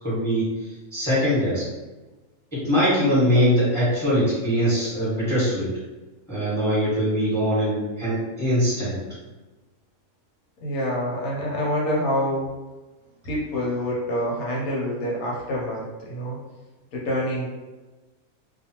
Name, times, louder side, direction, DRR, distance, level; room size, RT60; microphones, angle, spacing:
voice 1, 0.0-0.4 0.9-1.6 2.5-5.7 6.3-9.0, equal, ahead, -10 dB, 1.2 m, -22 dB
voice 2, 10.6-12.5 13.2-16.4 16.9-17.5, equal, 80° left, -4 dB, 1.2 m, -26 dB
2.5 x 2.3 x 2.8 m, 1.2 s
omnidirectional pair, 1.5 m